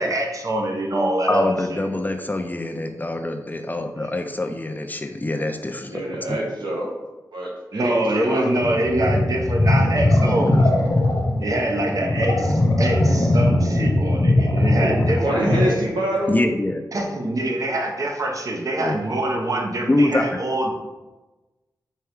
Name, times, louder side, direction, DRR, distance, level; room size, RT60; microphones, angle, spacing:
voice 1, 0.0-1.8 4.0-4.1 7.7-10.7 11.4-15.9 16.9-20.7, right 1 dB, 50° right, 2 dB, 0.8 m, -24 dB
voice 2, 1.3-6.0 6.3-6.4 16.3-16.8 18.8-18.9 19.9-20.4, left 1 dB, 25° left, 5 dB, 0.4 m, -24 dB
voice 3, 5.9-6.9 7.3-8.5 15.2-16.3, right 1 dB, 85° right, -2 dB, 0.9 m, -26 dB
sound 1, 8.6-15.7, left 1 dB, 60° left, 0.9 m, -20 dB
4.5 x 2.7 x 3.4 m, 1.1 s
cardioid pair, 45°, 7 cm